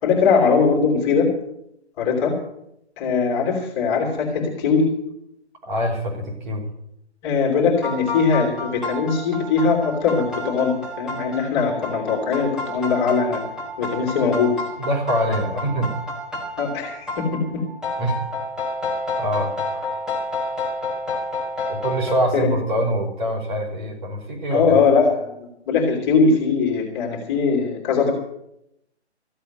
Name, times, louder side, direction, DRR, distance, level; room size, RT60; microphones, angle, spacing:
voice 1, 0.0-1.3 2.0-2.3 3.0-4.8 7.2-13.4 13.8-14.5 16.6-17.6 22.3-22.5 24.5-25.4 25.7-28.1, left 5 dB, 20° left, -1 dB, 3.3 m, -20 dB
voice 2, 5.7-6.6 14.8-15.9 18.0-18.2 19.2-19.5 21.7-24.9, right 1 dB, 45° right, 0 dB, 5.0 m, -24 dB
sound 1, 7.8-22.2, left 2 dB, ahead, 2.0 m, -30 dB
14.5 x 8.2 x 9.2 m, 0.79 s
figure-of-eight pair, 140°, 34 cm